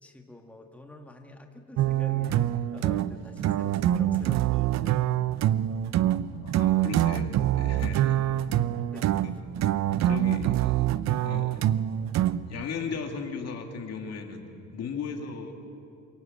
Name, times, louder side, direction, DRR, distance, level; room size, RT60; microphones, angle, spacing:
voice 1, 0.0-5.1 8.4-9.3, left 1 dB, 5° left, 3 dB, 1.9 m, -48 dB
sound 1, 1.8-12.6, right 12 dB, 60° right, 0.7 m, -25 dB
voice 2, 6.3-8.2 9.2-9.3 10.0-11.8 12.5-14.5 14.7-15.5, left 5 dB, 55° left, 3 dB, 2.6 m, -37 dB
27.5 x 18.0 x 7.5 m, 2.6 s
cardioid pair, 110°, 30 cm